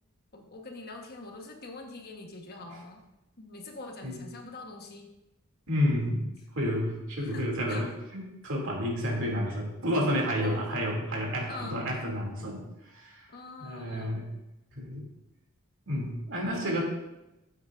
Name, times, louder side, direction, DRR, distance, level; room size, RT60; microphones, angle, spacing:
voice 1, 0.3-3.0 3.4-5.1 7.2-7.9 9.5-9.6 10.4-10.6 11.5-11.9 13.3-14.3, left 2 dB, 45° left, 2 dB, 1.3 m, -44 dB
voice 2, 5.7-6.2 6.5-13.3 13.6-14.3 14.7-15.1 15.9-16.8, equal, 60° right, -1 dB, 2.7 m, -30 dB
15.0 x 8.0 x 2.6 m, 0.96 s
head